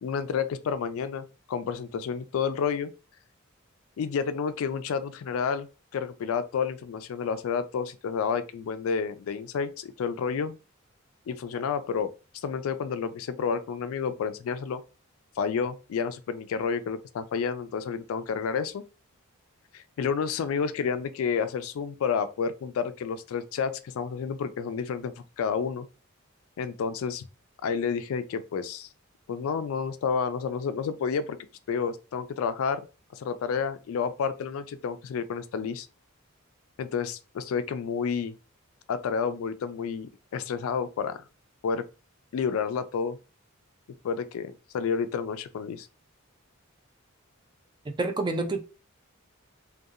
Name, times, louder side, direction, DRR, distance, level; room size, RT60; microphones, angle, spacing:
voice 1, 0.0-2.9 4.0-5.7 5.9-10.6 11.3-14.8 15.4-18.8 19.7-25.9 26.6-27.2 27.6-28.9 29.3-31.4 31.7-32.8 33.1-35.9 36.8-38.3 38.9-41.2 41.6-41.8 42.3-43.2 44.0-45.9, left 6 dB, 70° left, 0.3 m, -30 dB
voice 2, 47.9-48.6, right 2 dB, 20° right, 0.3 m, -28 dB
2.7 x 2.2 x 2.4 m
head